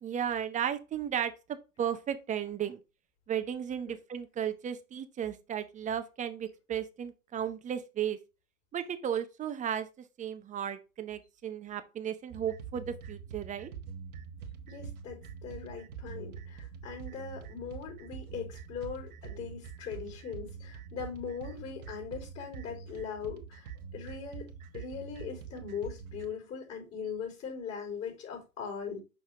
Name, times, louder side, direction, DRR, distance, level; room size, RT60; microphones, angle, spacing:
voice 1, 0.0-1.3 1.8-2.8 3.3-8.2 8.7-9.9 10.2-13.7, right 9 dB, 15° right, 0.7 m, -34 dB
sound 1, 12.3-26.3, right 6 dB, 70° right, 1.2 m, -45 dB
voice 2, 14.7-24.5 24.7-29.0, left 6 dB, 30° left, 4.3 m, -40 dB
6.3 x 5.6 x 3.6 m
hypercardioid pair, 100°, 45 cm